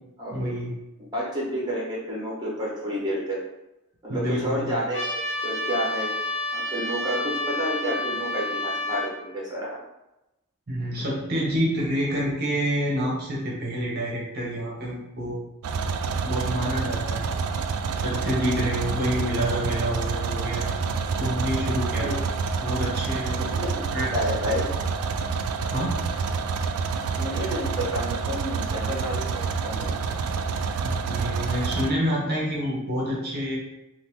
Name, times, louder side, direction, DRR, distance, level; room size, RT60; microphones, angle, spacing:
voice 1, 0.3-0.7 4.1-4.8 10.7-15.4 16.2-17.3 18.0-20.7 21.2-22.2 22.6-23.4 23.9-24.1 25.7-26.0 30.8-33.6, equal, 45° right, -4 dB, 0.8 m, -28 dB
voice 2, 1.1-3.4 4.0-6.1 6.5-9.8 22.0-22.1 23.6-23.8 24.1-24.7 27.2-30.2, equal, 20° right, -4 dB, 0.8 m, -30 dB
Trumpet, 4.9-9.1, left 2 dB, 60° left, 0.9 m, -29 dB
sound 1, 15.6-31.9, right 5 dB, 75° right, 0.3 m, -28 dB
2.8 x 2.5 x 3.6 m, 0.93 s
head